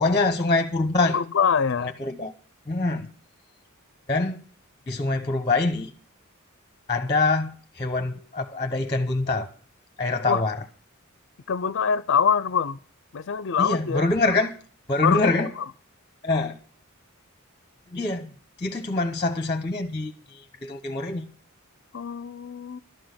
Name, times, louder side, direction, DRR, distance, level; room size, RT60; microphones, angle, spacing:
voice 1, 0.0-1.2 1.8-2.3 2.7-3.1 4.1-4.4 4.9-5.9 6.9-9.5 10.0-10.6 13.6-14.5 14.9-15.5 16.2-16.6 17.9-18.3 18.6-21.3, left 3 dB, 25° left, 0.8 m, -25 dB
voice 2, 1.1-1.9 10.3-10.4 11.5-12.8 13.1-14.0 15.0-15.3 21.9-22.8, left 6 dB, 55° left, 0.5 m, -24 dB
12.0 x 6.3 x 9.6 m
head